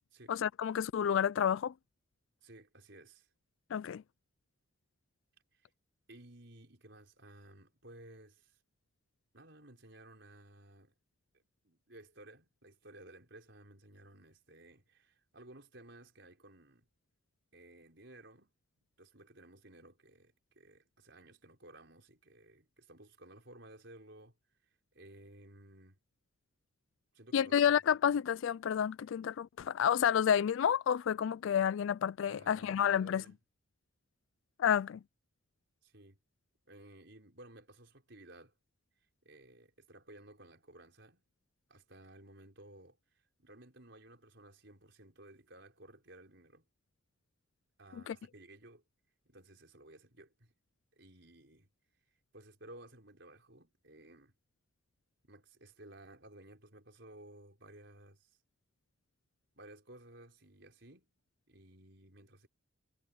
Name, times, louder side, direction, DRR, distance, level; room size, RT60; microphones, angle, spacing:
voice 1, 0.3-1.7 3.7-4.0 27.3-33.2 34.6-35.0 48.1-48.2, left 8 dB, 70° left, 0.3 m, -30 dB
voice 2, 2.4-3.3 5.5-5.7 6.1-8.6 9.3-10.9 11.3-16.9 17.5-18.5 19.0-24.4 24.9-26.0 27.1-27.7 28.1-28.2 32.3-33.4 35.8-36.2 36.7-38.5 39.2-41.2 41.7-43.0 43.4-46.7 47.8-48.8 49.3-50.5 51.0-51.7 52.3-54.3 55.2-58.3 59.5-61.1 61.5-62.5, right 1 dB, 55° right, 5.9 m, -56 dB
head